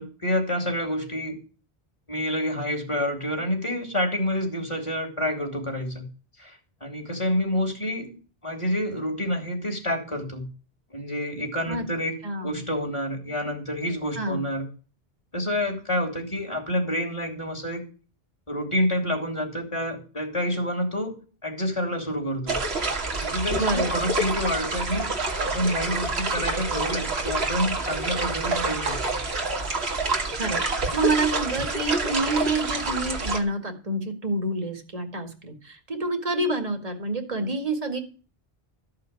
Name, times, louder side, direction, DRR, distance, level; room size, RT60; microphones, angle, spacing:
voice 1, 0.0-1.4 2.1-6.0 6.4-8.1 8.4-10.5 10.9-12.1 12.4-14.7 15.3-17.8 18.5-21.1 21.4-22.5 23.2-25.1 25.4-29.0, left 1 dB, 30° left, 2 dB, 3.4 m, -28 dB
voice 2, 12.2-12.6 14.2-14.4 23.5-24.0 30.3-30.6 30.9-38.0, right 2 dB, 35° right, 4 dB, 2.1 m, -28 dB
sound 1, 22.5-33.4, right 3 dB, 80° right, 2.1 m, -27 dB
14.0 x 5.7 x 9.1 m, 0.37 s
omnidirectional pair, 1.0 m